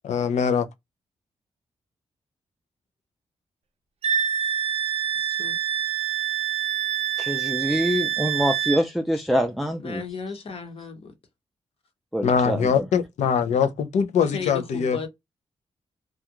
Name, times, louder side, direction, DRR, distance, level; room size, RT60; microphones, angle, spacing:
voice 1, 0.0-0.7 12.2-15.0, left 7 dB, 80° left, 0.5 m, -22 dB
Wind instrument woodwind instrument, 4.0-8.8, right 9 dB, 60° right, 0.5 m, -26 dB
voice 2, 5.1-5.6 9.2-9.3 9.8-11.1 14.3-15.1, left 6 dB, 55° left, 1.0 m, -35 dB
voice 3, 7.2-10.0 12.1-12.8, equal, ahead, 0.4 m, -25 dB
2.4 x 2.3 x 2.8 m
cardioid pair, 85°, 12 cm